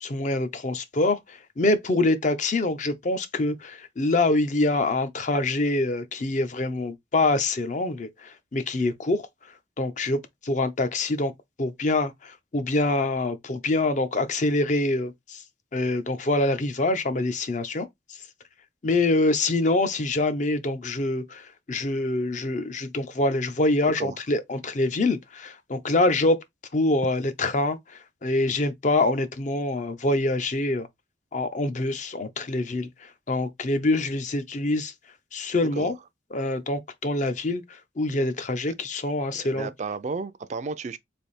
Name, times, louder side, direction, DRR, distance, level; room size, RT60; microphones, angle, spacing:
voice 1, 0.0-9.2 9.8-11.3 11.6-15.4 15.7-17.9 18.8-26.4 26.7-30.9 31.3-34.9 35.3-35.9 36.3-39.7, left 2 dB, 40° left, 0.5 m, -25 dB
voice 2, 39.3-41.0, right 4 dB, 40° right, 0.4 m, -33 dB
3.4 x 2.6 x 4.0 m
head